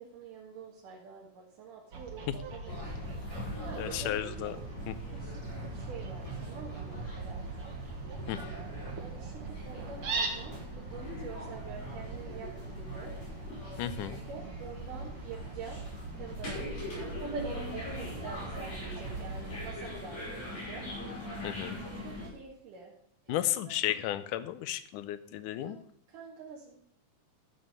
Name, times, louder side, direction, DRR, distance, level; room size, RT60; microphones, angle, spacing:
voice 1, 0.0-3.1 3.3-4.2 4.5-4.7 5.1-7.4 9.0-13.1 14.3-15.8 16.1-20.9 22.0-22.9 23.2-23.4 25.6-25.8 26.1-26.8, right 4 dB, 90° right, -4 dB, 3.3 m, -46 dB
Fowl, 1.9-19.8, right 4 dB, 50° right, 2.4 m, -41 dB
sound 1, 2.7-22.3, left 1 dB, 65° left, 7.1 m, -42 dB
voice 2, 3.8-4.6 4.9-5.0 8.3-8.4 13.8-14.2 21.4-21.8 23.3-25.8, left 13 dB, 90° left, 14 dB, 2.2 m, -33 dB
14.0 x 6.4 x 6.6 m, 0.67 s
omnidirectional pair, 3.6 m